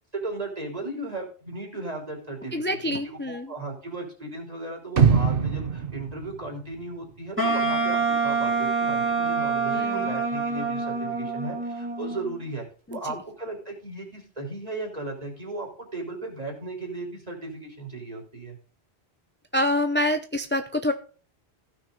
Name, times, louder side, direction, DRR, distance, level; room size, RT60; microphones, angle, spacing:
voice 1, 0.1-12.6 12.9-18.6, right 2 dB, 35° right, 0 dB, 3.8 m, -36 dB
voice 2, 2.5-3.5 9.7-10.0 12.9-13.0 19.5-20.9, left 1 dB, 15° left, 7 dB, 0.6 m, -26 dB
sound 1, 5.0-7.1 7.5-7.6, right 6 dB, 60° right, 1.2 m, -23 dB
Wind instrument woodwind instrument, 7.4-12.4, right 4 dB, 10° right, 2.6 m, -26 dB
15.5 x 6.2 x 3.9 m, 0.37 s
omnidirectional pair, 1.1 m